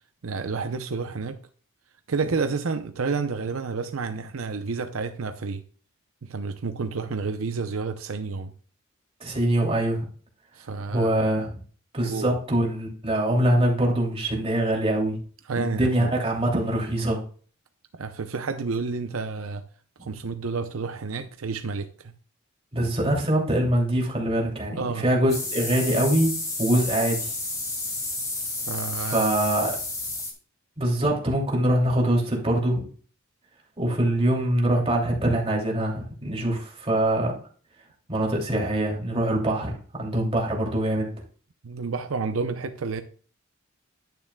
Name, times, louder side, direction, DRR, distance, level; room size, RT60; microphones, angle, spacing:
voice 1, 0.2-1.4 2.1-5.6 6.2-8.5 10.5-11.2 12.1-12.3 15.5-16.1 18.0-19.6 20.0-22.1 24.8-25.1 28.4-29.4 41.6-43.0, right 4 dB, 80° right, 8 dB, 0.6 m, -30 dB
voice 2, 9.2-10.0 10.9-11.6 11.9-15.2 15.5-17.2 22.7-27.3 29.0-29.7 30.8-32.8 33.8-37.4 38.1-41.1, right 1 dB, 30° right, -1 dB, 2.7 m, -24 dB
sound 1, 25.3-30.3, left 2 dB, 15° left, 2.1 m, -31 dB
10.5 x 8.9 x 2.3 m, 0.42 s
head